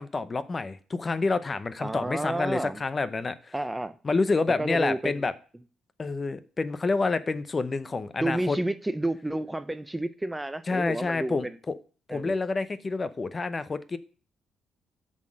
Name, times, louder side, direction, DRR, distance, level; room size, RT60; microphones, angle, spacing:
voice 1, 0.0-3.5 4.0-5.3 6.0-8.6 10.7-11.7 12.1-14.0, left 3 dB, 30° left, 0.7 m, -28 dB
voice 2, 1.8-2.8 3.5-3.9 4.5-5.3 8.2-11.5 12.1-12.3, right 1 dB, 10° right, 0.5 m, -30 dB
7.4 x 4.0 x 6.2 m
cardioid pair, 90°, 0 cm